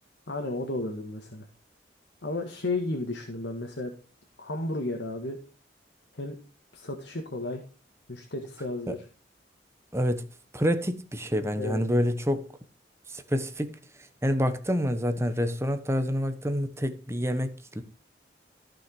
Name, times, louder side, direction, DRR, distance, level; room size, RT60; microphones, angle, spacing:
voice 1, 0.3-1.5 2.2-3.9 4.4-5.4 6.1-6.4 6.7-7.6 8.1-9.1 11.6-11.8, left 2 dB, 90° left, 1.9 m, -33 dB
voice 2, 9.9-10.2 10.5-12.5 13.1-13.8 14.2-17.8, equal, 15° right, 1.0 m, -27 dB
14.5 x 6.4 x 4.7 m
head